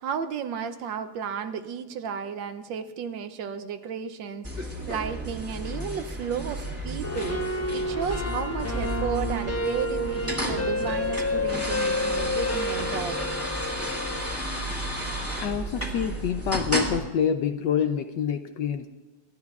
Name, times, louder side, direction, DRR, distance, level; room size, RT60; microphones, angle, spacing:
voice 1, 0.0-13.3, right 7 dB, 70° right, 10 dB, 1.3 m, -33 dB
sound 1, 4.4-17.0, equal, 5° right, 1.7 m, -32 dB
sound 2, 7.0-14.3, left 1 dB, 20° left, 0.4 m, -30 dB
voice 2, 15.4-18.9, left 8 dB, 70° left, 8 dB, 1.1 m, -27 dB
27.5 x 12.5 x 2.4 m, 1.2 s
omnidirectional pair, 2.3 m